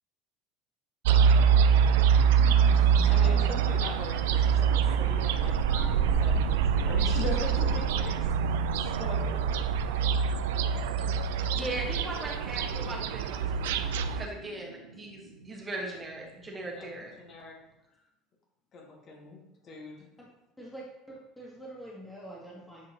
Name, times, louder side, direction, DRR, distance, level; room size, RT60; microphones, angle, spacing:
sound 1, 1.0-14.3, right 7 dB, 70° right, 0.4 m, -25 dB
voice 1, 2.7-8.2 8.8-9.4 16.8-16.9 17.2-17.6 18.7-20.1, left 3 dB, 40° left, -1 dB, 1.8 m, -41 dB
sound 2, 9.9-17.5, right 2 dB, 90° right, 0.8 m, -47 dB
voice 2, 11.5-17.1, right 2 dB, 25° right, -1 dB, 1.6 m, -39 dB
voice 3, 20.6-22.9, right 1 dB, 5° left, -4 dB, 1.6 m, -45 dB
8.4 x 4.8 x 2.9 m, 0.93 s
figure-of-eight pair, 65°, 0 cm